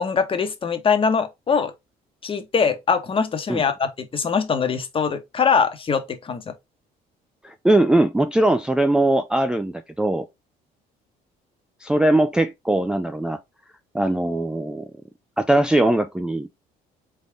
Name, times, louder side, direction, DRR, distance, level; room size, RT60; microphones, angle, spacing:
voice 1, 0.0-1.7 2.2-6.5, left 6 dB, 30° left, 1.0 m, -22 dB
voice 2, 7.4-10.3 11.8-13.4 13.9-14.9 15.4-16.5, right 1 dB, 5° right, 0.3 m, -20 dB
3.9 x 3.6 x 3.4 m
cardioid pair, 110°, 17 cm